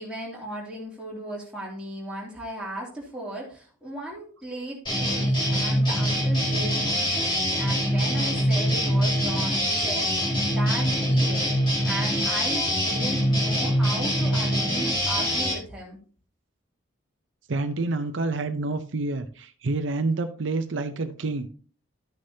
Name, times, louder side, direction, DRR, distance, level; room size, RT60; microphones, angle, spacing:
voice 1, 0.0-11.5 11.8-16.0, right 1 dB, 5° right, -5 dB, 2.7 m, -36 dB
sound 1, 4.9-15.5, equal, 25° left, 3.3 m, -24 dB
voice 2, 17.5-21.5, right 3 dB, 70° right, 8 dB, 0.6 m, -28 dB
12.5 x 6.5 x 2.8 m, 0.41 s
head